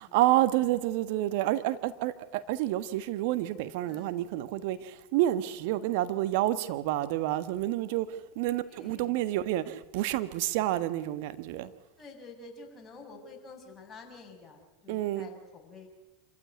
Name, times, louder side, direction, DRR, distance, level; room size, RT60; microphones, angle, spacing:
voice 1, 0.0-11.7 14.9-15.3, right 14 dB, 60° right, 1.5 m, -29 dB
voice 2, 3.8-4.2 8.7-9.2 11.5-11.6 12.0-15.9, left 3 dB, 20° left, 6.6 m, -49 dB
26.5 x 15.0 x 9.7 m
hypercardioid pair, 95°, 0 cm